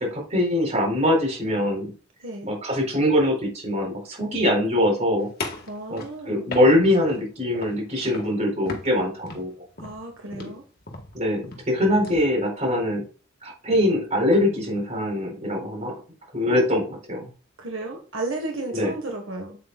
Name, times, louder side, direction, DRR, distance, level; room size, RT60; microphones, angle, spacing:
voice 1, 0.0-1.9 2.4-5.3 5.9-9.5 10.4-10.5 11.1-13.0 13.4-15.9 16.3-17.3 18.7-18.9, left 1 dB, 35° right, 0 dB, 4.1 m, -23 dB
sound 1, 5.4-7.2 7.5-7.9 8.1-8.4 8.7-12.3, left 2 dB, 50° left, 1.7 m, -36 dB
voice 2, 5.7-6.5 9.8-10.6 16.5-16.6 17.6-19.6, right 2 dB, 80° right, 2 dB, 1.5 m, -33 dB
8.3 x 8.0 x 2.4 m, 0.36 s
head